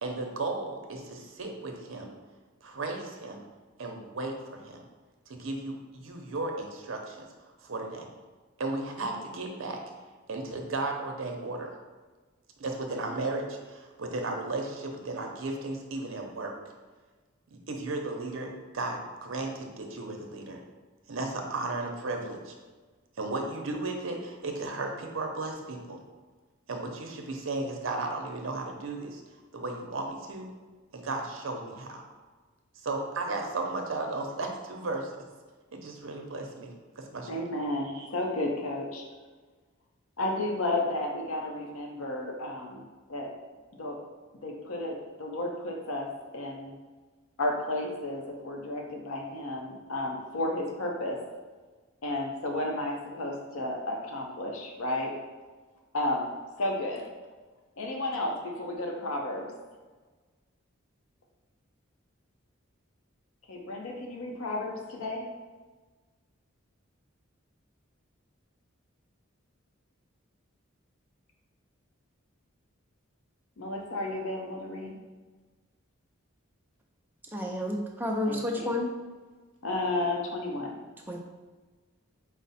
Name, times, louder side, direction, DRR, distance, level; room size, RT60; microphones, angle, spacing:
voice 1, 0.0-2.1 2.6-3.4 3.8-4.8 5.3-7.3 7.6-8.1 8.6-9.8 10.3-11.7 12.6-16.5 17.5-20.6 21.1-22.5 23.2-26.0 26.7-29.2 29.5-30.5 30.9-32.0 32.8-35.1 35.7-37.4 37.9-38.1, right 2 dB, 75° right, 2 dB, 0.6 m, -35 dB
voice 2, 37.3-39.0 40.2-43.3 43.8-44.0 44.4-46.7 47.4-51.2 52.0-55.1 55.9-56.3 56.6-57.1 57.8-59.5 63.5-65.2 73.6-75.0 78.3-78.7 79.6-80.8, left 1 dB, 85° left, 1 dB, 0.7 m, -32 dB
voice 3, 77.3-78.9 81.1-81.2, left 1 dB, 10° right, 0 dB, 0.4 m, -30 dB
4.9 x 2.0 x 4.1 m, 1.3 s
head